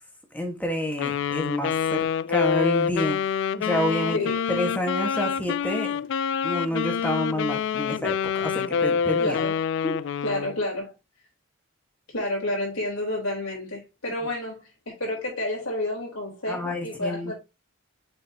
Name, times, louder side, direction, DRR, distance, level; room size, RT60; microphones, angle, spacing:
voice 1, 0.3-3.3 3.6-4.2 4.5-6.0 6.4-9.4 9.8-9.9 16.5-17.4, left 1 dB, 5° left, 1.4 m, -29 dB
Wind instrument woodwind instrument, 1.0-10.6, left 7 dB, 60° left, 0.3 m, -26 dB
voice 2, 9.2-9.6 10.2-10.9 12.1-17.4, left 1 dB, 85° left, 3.6 m, -30 dB
6.9 x 5.2 x 2.8 m
head